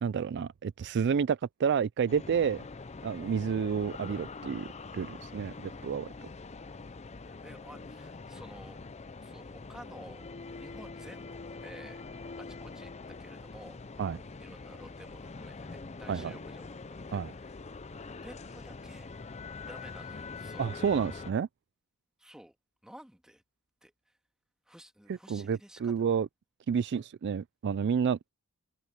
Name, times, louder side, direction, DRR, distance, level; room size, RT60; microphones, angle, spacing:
voice 1, 0.0-2.6 3.0-4.7 4.9-6.1 14.0-14.2 16.1-16.3 17.1-17.3 20.6-21.5 25.1-26.3 26.7-28.3, right 6 dB, 50° right, 0.3 m, -30 dB
sound 1, 2.1-21.3, left 3 dB, 30° left, 0.6 m, -44 dB
voice 2, 7.2-8.8 9.2-10.3 10.5-12.0 12.4-13.8 14.1-17.2 17.5-17.6 18.2-19.1 19.7-20.7 22.2-22.6 22.8-23.4 23.8-23.9 24.7-25.9, equal, 5° right, 1.9 m, -52 dB
head